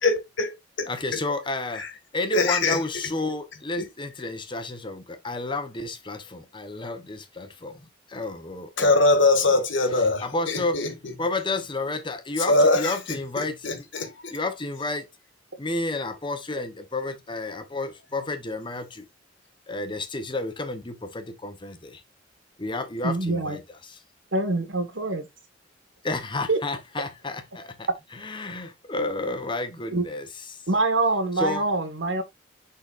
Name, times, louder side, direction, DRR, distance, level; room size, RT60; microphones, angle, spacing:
voice 1, 0.0-0.9 1.1-1.2 1.8-1.9 2.3-2.8 3.8-3.9 8.8-11.1 12.5-12.9 13.4-14.3, left 2 dB, 85° left, 1.8 m, -22 dB
voice 2, 0.9-1.8 2.1-9.6 9.9-10.8 11.2-13.7 14.3-15.1 15.6-19.1 19.7-22.0 22.6-24.0 26.0-30.7 31.4-31.7, left 2 dB, 25° left, 0.9 m, -31 dB
voice 3, 23.0-23.6 24.3-25.3 26.5-26.6 29.9-30.0 30.7-32.2, right 2 dB, 85° right, 1.5 m, -24 dB
10.5 x 4.0 x 2.5 m
head